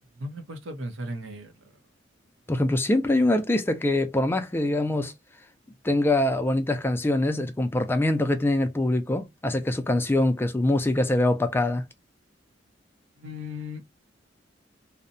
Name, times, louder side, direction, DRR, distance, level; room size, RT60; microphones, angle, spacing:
voice 1, 0.2-1.5 13.2-13.9, left 1 dB, 80° right, 0.6 m, -36 dB
voice 2, 2.5-5.1 5.8-11.8, left 1 dB, 10° left, 0.3 m, -24 dB
2.7 x 2.1 x 2.5 m
head